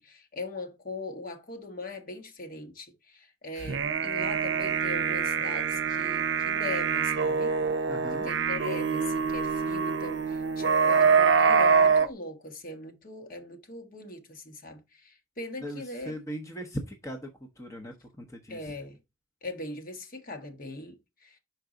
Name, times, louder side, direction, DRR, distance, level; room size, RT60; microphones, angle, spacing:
voice 1, 0.0-7.5 8.1-16.1 18.5-19.0 19.4-21.4, left 2 dB, 45° left, 1.3 m, -40 dB
sound 1, 3.6-12.1, right 6 dB, 65° right, 0.6 m, -25 dB
voice 2, 7.9-8.3 15.6-17.3 17.6-18.7, equal, 15° left, 0.8 m, -39 dB
6.0 x 4.6 x 3.8 m
head